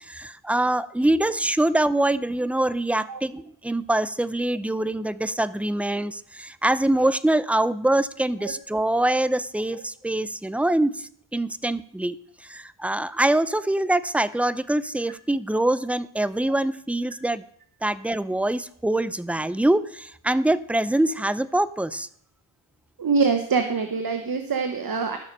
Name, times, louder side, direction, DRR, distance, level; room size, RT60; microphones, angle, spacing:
voice 1, 0.1-12.2 12.4-17.4 17.8-22.1, right 1 dB, 5° right, 16 dB, 0.4 m, -24 dB
voice 2, 23.0-25.2, right 5 dB, 50° right, 6 dB, 1.1 m, -24 dB
13.5 x 6.5 x 5.4 m, 0.65 s
cardioid pair, 70°, 46 cm